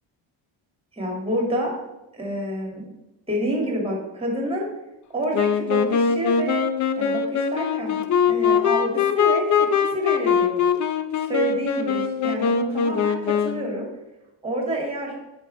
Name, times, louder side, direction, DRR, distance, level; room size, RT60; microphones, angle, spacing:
voice 1, 1.0-1.7 2.1-2.9 3.3-4.7 5.1-6.6 7.0-10.6 11.3-13.9 14.4-15.1, right 1 dB, 10° right, -1 dB, 2.1 m, -28 dB
Wind instrument woodwind instrument, 5.3-13.7, left 7 dB, 40° left, 0.5 m, -22 dB
9.0 x 5.2 x 3.3 m, 0.99 s
cardioid pair, 140°, 47 cm